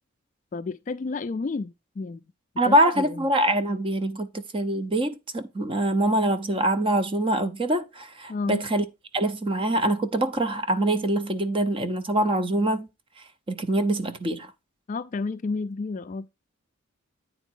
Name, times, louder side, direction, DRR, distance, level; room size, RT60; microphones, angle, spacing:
voice 1, 0.5-2.2 2.6-3.2 8.3-8.6 14.9-16.3, left 3 dB, 35° left, 0.3 m, -31 dB
voice 2, 2.6-8.8 9.1-12.9 13.5-14.5, right 1 dB, 25° right, 0.6 m, -24 dB
9.1 x 4.1 x 4.5 m
head